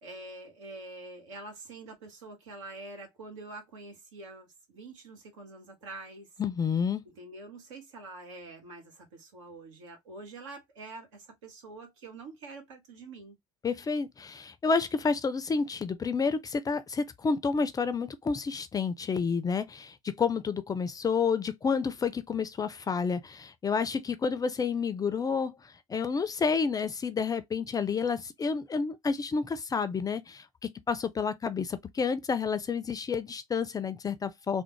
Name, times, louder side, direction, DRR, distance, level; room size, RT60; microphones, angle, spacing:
voice 1, 0.0-6.3 7.0-13.4, right 2 dB, 75° right, 1.3 m, -46 dB
voice 2, 6.4-7.0 13.6-34.6, left 5 dB, 25° left, 0.4 m, -30 dB
3.5 x 2.1 x 3.0 m
figure-of-eight pair, 65°, 16 cm